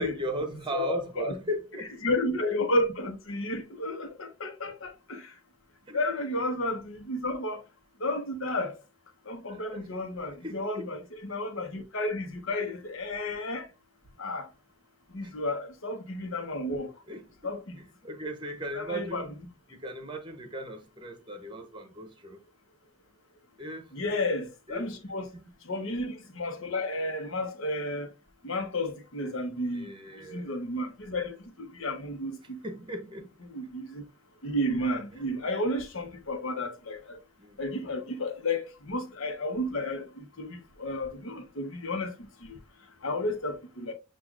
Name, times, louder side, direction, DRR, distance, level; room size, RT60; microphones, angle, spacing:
voice 1, 0.0-2.0 5.9-6.0 9.5-9.9 10.4-11.0 17.1-19.4 19.7-22.4 23.6-23.8 24.7-24.9 25.3-25.5 29.7-30.5 32.6-33.3 35.1-35.2 37.4-37.6 37.8-37.9, right 1 dB, 20° right, 0.9 m, -37 dB
voice 2, 0.7-1.3 2.0-5.2 5.9-7.6 8.0-8.7 9.3-13.6 14.2-14.4 15.1-16.9 17.4-17.6 18.7-19.3 23.9-25.3 25.7-28.1 28.4-29.9 30.3-32.6 33.5-34.0 34.4-37.2 37.6-42.1 42.4-42.6 43.0-43.9, left 1 dB, 65° left, 1.0 m, -32 dB
7.5 x 2.5 x 2.4 m
head